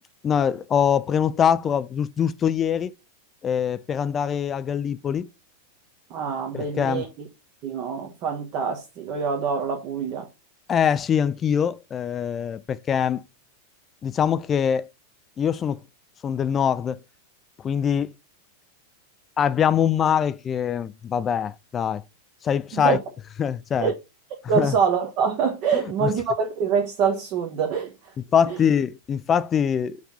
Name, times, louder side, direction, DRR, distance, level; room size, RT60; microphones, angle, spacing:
voice 1, 0.2-2.9 3.4-5.3 6.5-7.1 10.7-13.2 14.0-14.9 15.4-15.8 16.2-17.0 17.6-18.1 19.4-22.0 22.4-23.0 23.4-23.9 24.4-24.7 25.7-26.1 28.3-30.0, left 8 dB, 25° left, 0.4 m, -23 dB
voice 2, 6.1-7.1 7.6-10.3 22.7-23.0 23.8-23.9 24.5-27.9 28.5-28.6, right 6 dB, 40° right, 1.2 m, -25 dB
6.7 x 3.4 x 5.5 m
figure-of-eight pair, 90°, 0 cm